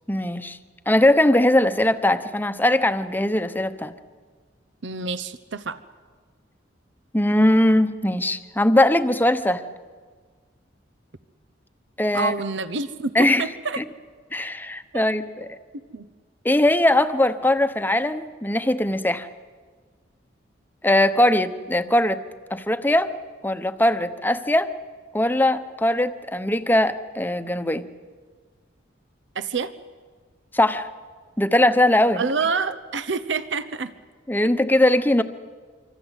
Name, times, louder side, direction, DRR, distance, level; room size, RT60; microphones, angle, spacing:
voice 1, 0.1-0.6 0.9-3.9 7.1-9.6 12.0-12.3 13.1-13.4 13.8-13.9 14.3-15.5 16.4-19.3 20.8-22.2 22.5-23.1 23.4-24.7 25.1-27.9 30.5-30.9 31.4-32.3 34.3-35.2, left 1 dB, 10° left, 11 dB, 1.0 m, -20 dB
voice 2, 4.8-5.8 12.1-13.1 13.4-13.8 14.9-15.1 15.9-16.1 29.3-29.7 32.2-33.9, right 4 dB, 70° right, 13 dB, 0.9 m, -27 dB
25.5 x 25.0 x 8.3 m, 1.5 s
head